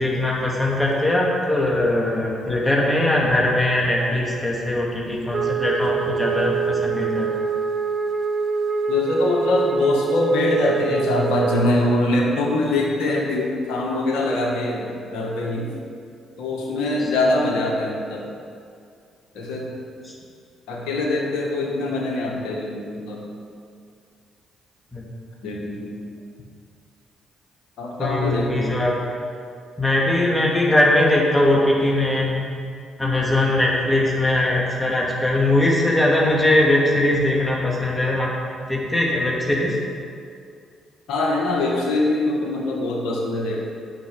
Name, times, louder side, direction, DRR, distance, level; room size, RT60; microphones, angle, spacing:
voice 1, 0.0-7.3 20.0-20.1 24.9-25.0 28.0-28.9 29.8-32.4 33.0-38.3 38.7-39.8, left 1 dB, 15° left, -4 dB, 3.0 m, -20 dB
Wind instrument woodwind instrument, 5.3-11.7, right 5 dB, 50° right, 0.8 m, -24 dB
voice 2, 8.9-15.7 16.4-18.2 19.3-19.7 20.7-23.2 25.4-25.9 27.8-28.8 41.1-43.6, left 2 dB, 75° left, -2 dB, 1.8 m, -23 dB
9.3 x 6.3 x 8.6 m, 2.3 s
hypercardioid pair, 50°, 0 cm